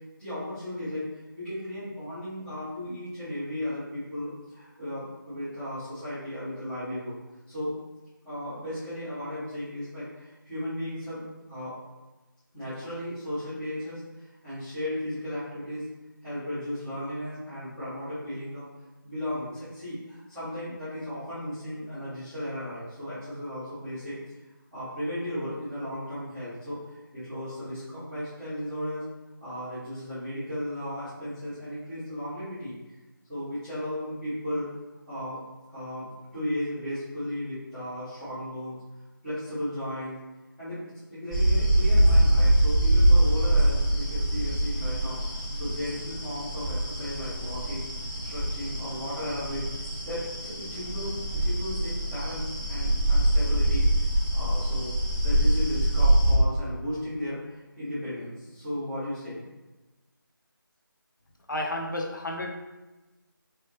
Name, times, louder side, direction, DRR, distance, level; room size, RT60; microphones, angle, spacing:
voice 1, 0.2-1.1 1.3-7.2 7.5-7.7 8.2-11.8 12.5-15.8 16.2-18.6 19.0-24.2 24.7-29.0 29.4-32.9 33.3-34.7 35.1-35.4 35.7-38.8 39.2-40.2 40.6-47.9 48.2-49.7 50.0-53.9 54.1-54.9 55.2-59.4, left 1 dB, ahead, -19 dB, 0.5 m, -35 dB
sound 1, 41.3-56.3, right 1 dB, 20° left, 1.0 m, -24 dB
voice 2, 61.5-62.6, left 1 dB, 60° left, 1 dB, 0.6 m, -31 dB
3.1 x 3.0 x 3.2 m, 1.1 s
figure-of-eight pair, 170°, 12 cm